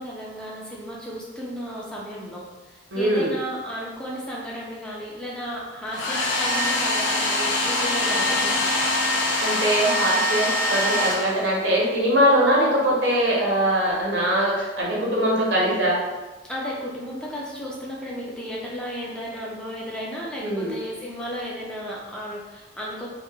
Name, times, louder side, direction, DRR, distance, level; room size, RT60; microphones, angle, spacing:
voice 1, 0.0-8.6 16.5-23.1, equal, 5° left, -5 dB, 0.3 m, -34 dB
voice 2, 2.9-3.3 9.4-16.0 20.4-20.7, equal, 75° right, -4 dB, 0.7 m, -22 dB
Domestic sounds home sounds, 5.9-11.7, left 1 dB, 75° left, 0.5 m, -24 dB
2.9 x 2.1 x 2.2 m, 1.2 s
head